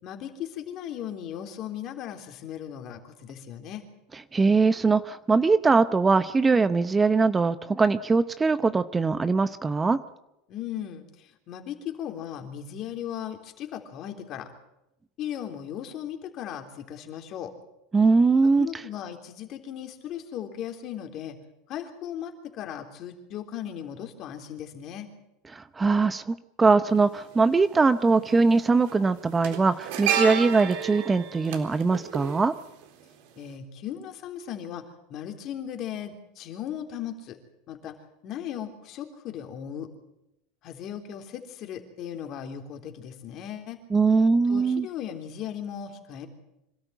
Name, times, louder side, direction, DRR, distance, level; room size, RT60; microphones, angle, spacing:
voice 1, 0.0-3.8 10.5-14.5 15.2-17.5 18.4-21.4 21.7-25.1 33.4-37.4 37.7-37.9 38.2-39.9 40.6-43.8 44.5-46.3, left 10 dB, 45° left, 4 dB, 3.4 m, -37 dB
voice 2, 4.3-10.0 17.9-18.8 25.5-32.5 43.9-44.9, right 4 dB, 15° right, 12 dB, 0.8 m, -22 dB
sound 1, 26.9-27.0 28.3-28.5 28.8-33.1 33.4-33.5, right 8 dB, 70° right, 3.8 m, -31 dB
25.5 x 13.5 x 9.2 m, 0.89 s
supercardioid pair, 130°, 0 cm